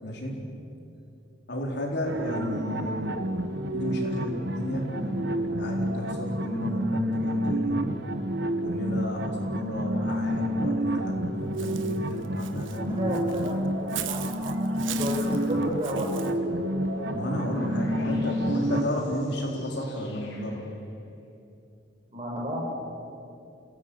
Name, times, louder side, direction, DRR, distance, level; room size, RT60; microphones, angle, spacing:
voice 1, 0.0-0.4 1.5-3.3 3.7-7.8 8.6-13.0 17.1-20.6, left 1 dB, 60° left, 1 dB, 4.1 m, -32 dB
sound 1, 2.1-18.8, right 1 dB, 60° right, 1.3 m, -29 dB
Walk footsteps / Bird, 11.6-16.3, right 12 dB, 90° right, 1.3 m, -39 dB
voice 2, 12.8-16.3 17.4-18.0 22.1-22.6, equal, 30° right, 0 dB, 5.4 m, -33 dB
sound 2, 15.0-20.7, left 1 dB, 85° left, 5.8 m, -45 dB
28.5 x 17.5 x 8.7 m, 2.6 s
head